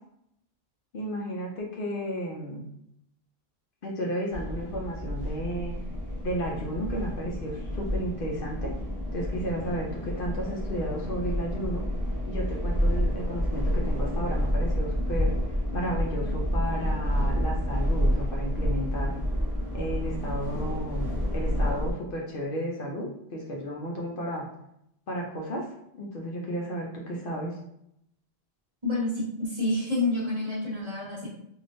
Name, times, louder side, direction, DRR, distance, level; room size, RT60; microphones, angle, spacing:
voice 1, 0.9-2.7 3.8-5.7 6.2-8.7 9.1-11.8 12.2-15.3 15.7-19.1 19.7-24.5 25.1-25.6 25.9-27.5, equal, 60° left, -2 dB, 0.7 m, -33 dB
sound 1, 4.3-21.9, equal, 20° right, 0.8 m, -29 dB
voice 2, 28.8-31.3, left 2 dB, 35° right, -5 dB, 1.1 m, -28 dB
3.3 x 2.5 x 2.5 m, 0.76 s
omnidirectional pair, 1.1 m